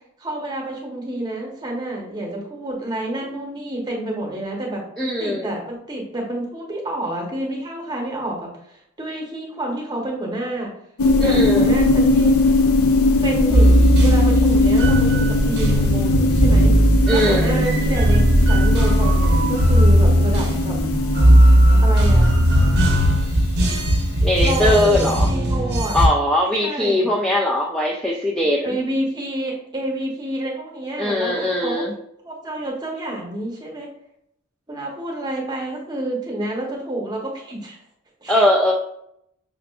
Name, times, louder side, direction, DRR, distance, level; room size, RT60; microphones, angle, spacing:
voice 1, 0.2-10.7 11.2-12.4 13.2-16.7 17.1-20.8 21.8-22.3 24.4-26.0 26.6-27.1 28.6-31.7 32.2-33.9 34.7-37.8 38.2-38.4, right 1 dB, 20° right, -1 dB, 0.9 m, -29 dB
voice 2, 5.0-5.5 11.2-11.7 17.1-17.6 24.2-25.3 25.9-28.7 31.0-31.9 38.3-38.7, left 1 dB, ahead, -3 dB, 0.3 m, -20 dB
sound 1, 11.0-24.4, left 2 dB, 85° left, 0.5 m, -20 dB
sound 2, 13.5-26.1, right 1 dB, 50° right, 0.7 m, -17 dB
5.7 x 2.4 x 2.3 m, 0.74 s
head